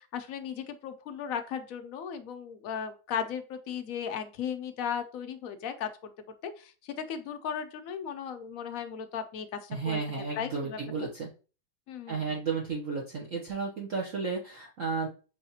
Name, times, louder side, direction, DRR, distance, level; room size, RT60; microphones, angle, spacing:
voice 1, 0.0-5.9 6.4-6.7 7.1-10.8 11.9-12.4, left 8 dB, 65° left, 7 dB, 0.9 m, -36 dB
voice 2, 9.7-11.3 12.1-15.1, right 4 dB, 55° right, -2 dB, 1.0 m, -33 dB
5.6 x 3.4 x 2.8 m, 0.35 s
omnidirectional pair, 2.0 m